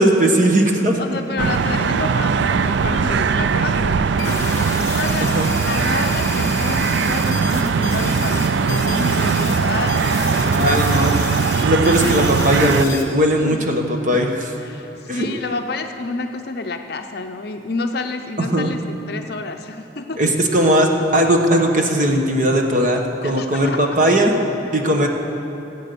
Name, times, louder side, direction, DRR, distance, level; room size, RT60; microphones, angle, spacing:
voice 1, 0.0-1.0 5.2-5.5 10.4-11.2 11.6-14.5 15.1-15.3 18.4-18.7 20.2-24.3 24.7-25.1, right 1 dB, 40° right, 2 dB, 1.2 m, -18 dB
voice 2, 1.0-10.8 11.6-12.3 13.4-13.7 14.1-14.3 14.6-20.4 23.2-24.0, left 3 dB, 55° left, 5 dB, 0.6 m, -29 dB
sound 1, 1.4-12.8, right 5 dB, 70° right, 0.4 m, -20 dB
sound 2, 4.2-13.0, left 4 dB, 15° left, 1.5 m, -31 dB
17.0 x 8.4 x 6.8 m, 2.9 s
head